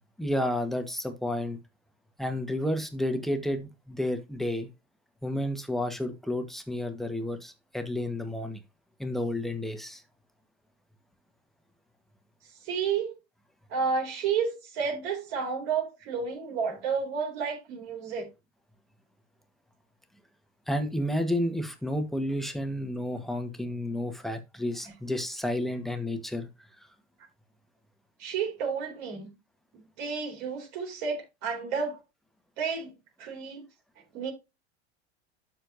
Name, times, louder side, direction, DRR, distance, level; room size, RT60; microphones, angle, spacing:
voice 1, 0.2-1.6 2.2-4.7 5.2-8.6 9.0-10.0 20.7-26.5, left 1 dB, ahead, 1.4 m, -31 dB
voice 2, 12.6-13.1 13.7-18.3 28.2-29.3 29.7-32.0 32.6-32.9 33.2-33.6 34.1-34.3, right 6 dB, 60° right, 4.1 m, -31 dB
12.5 x 4.5 x 2.7 m
hypercardioid pair, 85°, 33 cm